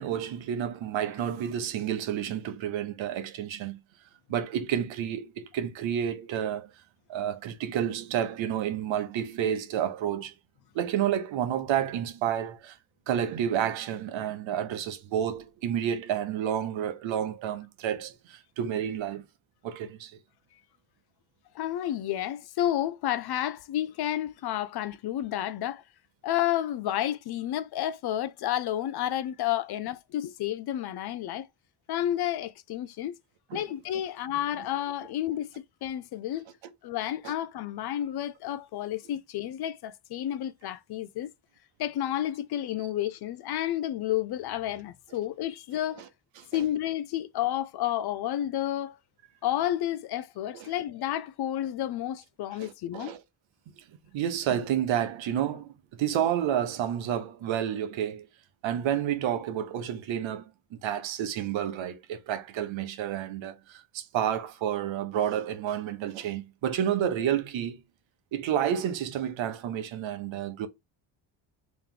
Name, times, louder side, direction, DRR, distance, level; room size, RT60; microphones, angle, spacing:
voice 1, 0.0-3.8 4.3-6.7 7.1-10.3 10.7-12.8 13.1-19.2 19.6-20.2 33.5-33.6 37.2-37.3 46.5-46.6 50.5-50.7 52.6-53.2 53.8-53.9 54.1-58.3 58.6-67.8 68.3-70.7, right 9 dB, 65° right, 1.0 m, -30 dB
voice 2, 21.5-25.8 26.2-31.5 31.9-33.2 33.5-36.5 36.8-41.3 41.8-46.0 46.5-49.0 49.4-53.2, left 12 dB, 55° left, 0.5 m, -31 dB
3.3 x 3.1 x 3.7 m
supercardioid pair, 80°, 49 cm